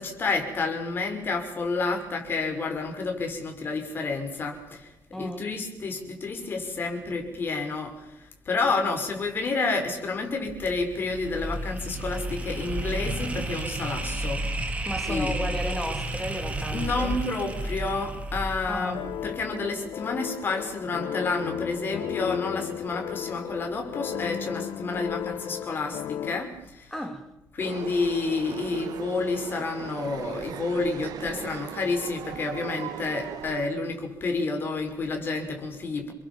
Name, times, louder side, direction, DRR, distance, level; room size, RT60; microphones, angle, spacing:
voice 1, 0.0-4.9 5.2-14.4 15.1-15.4 16.7-19.0 19.2-26.9 27.5-36.1, left 3 dB, 35° left, 5.9 m, -30 dB
voice 2, 5.1-5.5 14.8-17.2 18.7-19.0 26.9-27.3, left 1 dB, 5° left, 3.0 m, -34 dB
sound 1, 10.4-19.6, right 1 dB, 20° right, 3.0 m, -32 dB
sound 2, 18.9-26.4, left 10 dB, 80° left, 1.0 m, -35 dB
sound 3, 27.6-33.7, right 10 dB, 90° right, 1.5 m, -39 dB
29.5 x 22.0 x 7.2 m
cardioid pair, 165°, 6 cm